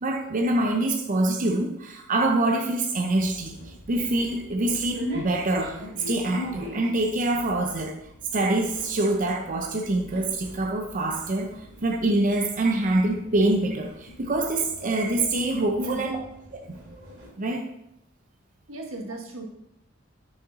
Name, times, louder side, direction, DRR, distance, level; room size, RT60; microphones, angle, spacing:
voice 1, 0.0-7.9 8.3-11.5 11.8-16.2 16.5-16.6 17.4-17.6, right 2 dB, 40° right, 3 dB, 0.6 m, -25 dB
sound 1, 3.0-17.3, left 1 dB, 60° right, 2.5 m, -42 dB
voice 2, 15.7-16.2 18.7-19.5, right 1 dB, 85° right, 1 dB, 1.4 m, -35 dB
6.5 x 5.6 x 4.0 m, 0.81 s
head